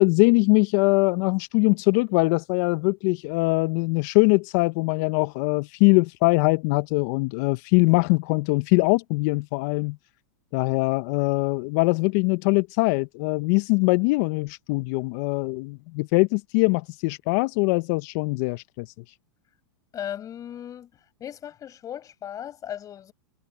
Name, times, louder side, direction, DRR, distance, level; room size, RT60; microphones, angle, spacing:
voice 1, 0.0-10.0 10.5-18.9, left 27 dB, 55° left, 1.3 m, -22 dB
voice 2, 19.9-20.9 21.2-23.1, left 10 dB, 30° left, 6.7 m, -36 dB
hypercardioid pair, 110°, 12 cm